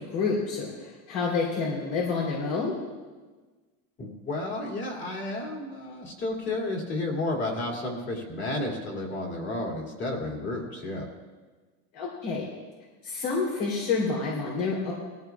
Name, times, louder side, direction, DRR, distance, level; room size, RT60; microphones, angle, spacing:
voice 1, 0.0-2.7 11.9-12.4 13.0-14.9, left 4 dB, 70° left, -3 dB, 3.4 m, -28 dB
voice 2, 4.0-11.1, left 2 dB, 25° left, -1 dB, 2.5 m, -32 dB
20.0 x 14.5 x 2.4 m, 1.3 s
cardioid pair, 165°, 41 cm